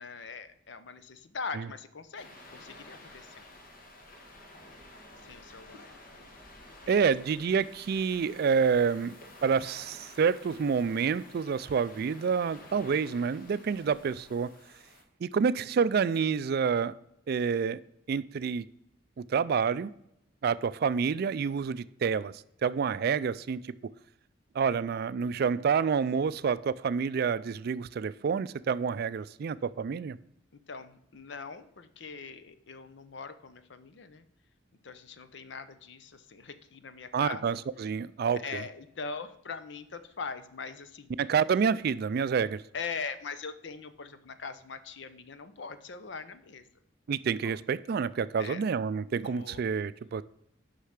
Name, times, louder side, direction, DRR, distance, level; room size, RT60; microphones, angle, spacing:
voice 1, 0.0-3.4 5.2-5.9 6.8-7.1 30.5-34.3 34.8-37.6 38.4-41.1 42.7-46.6 47.4-47.5 48.4-48.7 49.2-49.6, left 5 dB, 65° left, 11 dB, 0.7 m, -41 dB
sound 1, 2.1-15.0, left 1 dB, 50° left, 1.7 m, -51 dB
voice 2, 6.9-14.5 15.2-17.0 17.3-17.8 18.1-18.7 19.2-19.9 20.4-22.3 22.6-23.6 24.5-30.2 37.1-38.6 41.2-42.6 47.1-50.2, right 6 dB, 55° right, 17 dB, 0.3 m, -28 dB
6.7 x 5.6 x 6.4 m, 0.79 s
head